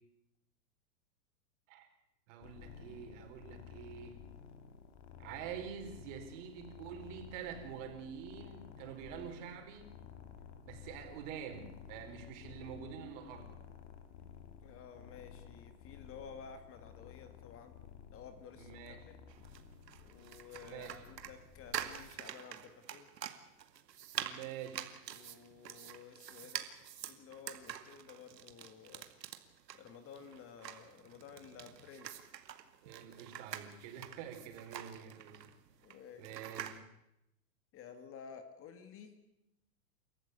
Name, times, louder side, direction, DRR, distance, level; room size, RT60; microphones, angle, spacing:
voice 1, 2.3-4.2 5.2-9.9 10.6-13.6 18.6-19.0 20.6-21.0 24.1-24.9 32.8-35.4 36.2-36.8, right 8 dB, 50° right, 5 dB, 4.7 m, -47 dB
sound 1, 2.4-22.1, left 8 dB, 45° left, 3.1 m, -54 dB
voice 2, 14.6-17.8 18.1-18.8 19.1-19.2 20.0-23.1 25.1-26.7 27.1-29.1 29.7-32.2 35.8-36.3 37.7-39.2, left 6 dB, 25° left, 10 dB, 2.1 m, -53 dB
sound 2, 19.3-36.8, right 10 dB, 85° right, 2.3 m, -46 dB
29.5 x 14.0 x 8.3 m, 0.85 s
hypercardioid pair, 135°, 48 cm